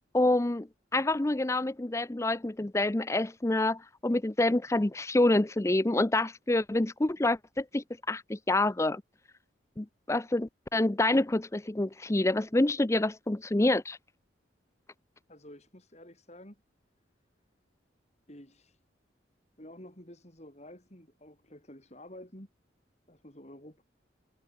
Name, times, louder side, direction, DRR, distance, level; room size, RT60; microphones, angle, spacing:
voice 1, 0.1-0.7 0.9-9.0 9.8-14.0, left 2 dB, 15° left, 0.5 m, -27 dB
voice 2, 15.3-16.6 18.3-18.8 19.6-22.5 23.1-23.8, left 1 dB, 35° left, 7.0 m, -50 dB
head